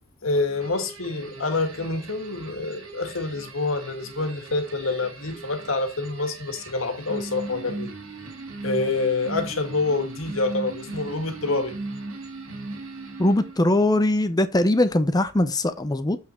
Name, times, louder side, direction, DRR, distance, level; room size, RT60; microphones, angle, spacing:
voice 1, 0.2-7.9 8.6-11.7, left 3 dB, 70° left, 2.0 m, -27 dB
sound 1, 0.6-13.8, right 2 dB, 85° right, 2.4 m, -38 dB
voice 2, 13.2-16.2, left 1 dB, 20° left, 0.6 m, -21 dB
7.5 x 6.0 x 4.4 m
head